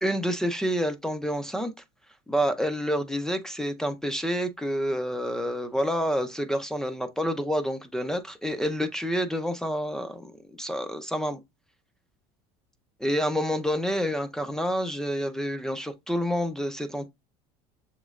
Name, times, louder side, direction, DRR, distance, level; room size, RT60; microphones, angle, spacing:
voice 1, 0.0-1.7 2.3-10.3 10.6-11.4 13.0-17.1, equal, 5° left, 0.4 m, -28 dB
7.0 x 3.1 x 2.3 m
cardioid pair, 150°, 16 cm